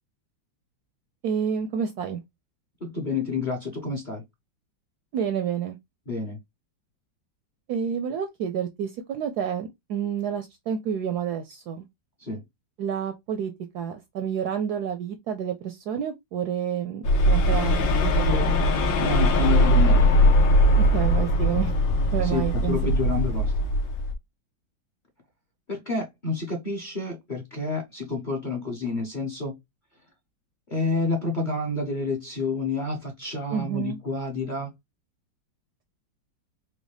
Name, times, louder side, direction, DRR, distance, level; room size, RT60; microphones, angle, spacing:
voice 1, 1.2-2.2 5.1-5.8 7.7-11.8 12.8-18.7 20.8-21.7 22.1-22.8 33.5-34.0, right 8 dB, 75° right, 0.9 m, -29 dB
voice 2, 2.8-4.2 6.1-6.4 12.2-12.4 19.0-20.2 22.2-23.5 25.7-29.5 30.7-34.7, left 3 dB, 35° left, 0.8 m, -29 dB
sound 1, 17.0-24.1, equal, 85° left, 1.6 m, -20 dB
4.6 x 2.2 x 3.2 m
omnidirectional pair, 2.0 m